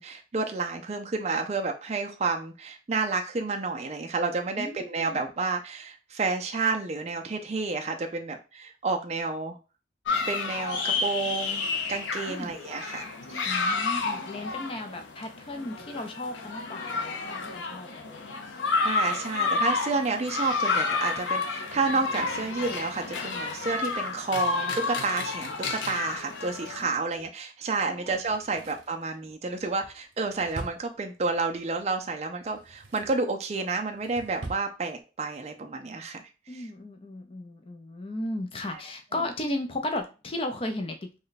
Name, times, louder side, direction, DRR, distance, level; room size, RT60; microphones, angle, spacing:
voice 1, 0.0-9.6 10.3-13.1 18.8-36.7 38.7-38.8, right 4 dB, 35° right, 4 dB, 0.4 m, -30 dB
voice 2, 4.6-5.2 12.3-12.5 13.4-18.5 26.8-27.2 27.9-28.1 36.5-41.2, left 1 dB, 30° left, 6 dB, 0.5 m, -35 dB
sound 1, 10.1-26.8, left 4 dB, 85° left, 0.6 m, -30 dB
Drawer open or close, 28.2-31.5 32.4-33.3 33.7-34.7 35.0-35.1, right 2 dB, 90° right, 0.7 m, -44 dB
3.1 x 2.2 x 3.9 m, 0.32 s
head